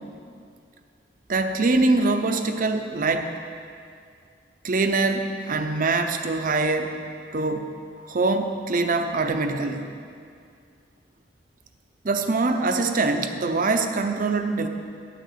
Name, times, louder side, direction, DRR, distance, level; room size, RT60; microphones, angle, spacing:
voice 1, 1.3-3.4 4.6-7.0 7.3-7.6 8.1-9.9 12.0-14.7, right 3 dB, 50° right, 7 dB, 0.7 m, -23 dB
10.5 x 6.5 x 6.7 m, 2.3 s
head